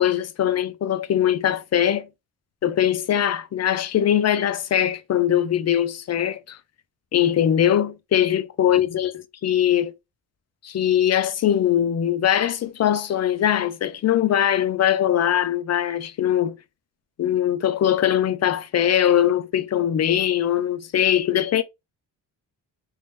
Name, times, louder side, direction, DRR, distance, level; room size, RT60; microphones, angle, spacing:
voice 1, 0.0-2.1 2.6-6.6 7.1-9.9 10.6-16.6 17.2-21.6, left 10 dB, 40° left, 0.5 m, -21 dB
3.2 x 2.7 x 3.2 m
cardioid pair, 105°, 41 cm